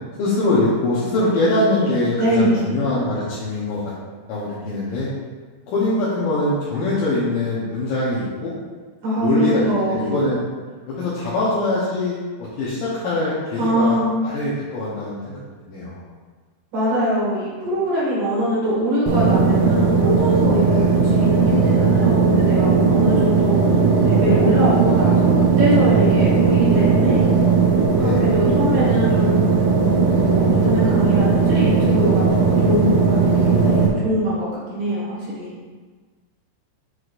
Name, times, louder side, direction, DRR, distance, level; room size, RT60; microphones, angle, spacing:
voice 1, 0.2-3.8 4.3-5.1 5.7-8.5 9.2-10.4 11.0-14.0 14.2-15.4 15.7-16.0 20.6-20.9 22.9-23.3 28.0-28.3, left 2 dB, 75° left, -9 dB, 2.1 m, -23 dB
voice 2, 2.2-2.8 9.0-10.1 13.6-14.1 16.7-23.7 24.0-27.3 28.0-29.4 30.3-35.5, equal, 55° right, -8 dB, 2.8 m, -23 dB
sound 1, 19.1-33.9, right 5 dB, 75° right, 2.5 m, -17 dB
7.7 x 4.8 x 2.5 m, 1.5 s
omnidirectional pair, 5.1 m